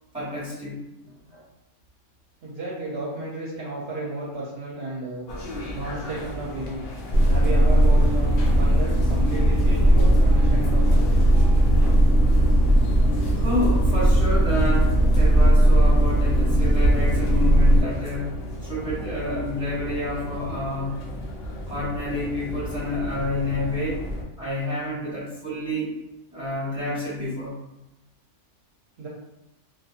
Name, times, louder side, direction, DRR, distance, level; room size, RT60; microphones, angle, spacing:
voice 1, 0.1-1.4 13.4-21.0 21.7-24.0 24.4-25.9 26.3-27.5, left 1 dB, 5° right, -8 dB, 1.0 m, -29 dB
voice 2, 2.4-5.3 5.7-6.9 7.3-11.3 29.0-29.1, right 2 dB, 65° right, -5 dB, 0.8 m, -33 dB
sound 1, 5.3-24.2, left 1 dB, 65° left, 0.7 m, -34 dB
sound 2, 7.1-17.8, right 1 dB, 90° left, 0.9 m, -18 dB
2.7 x 2.2 x 2.4 m, 0.94 s
omnidirectional pair, 1.2 m